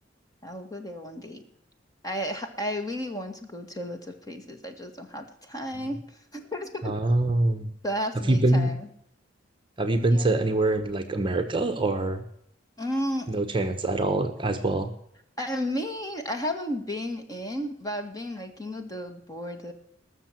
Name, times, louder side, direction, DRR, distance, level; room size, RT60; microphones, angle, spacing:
voice 1, 0.4-1.4 2.0-6.0 6.3-7.0 7.8-8.9 10.1-10.3 12.8-13.3 15.4-19.7, equal, 20° left, 5 dB, 1.9 m, -33 dB
voice 2, 6.8-7.7 8.3-8.7 9.8-12.2 13.3-14.9, right 2 dB, 25° right, 7 dB, 1.1 m, -24 dB
20.0 x 6.9 x 6.0 m, 0.71 s
head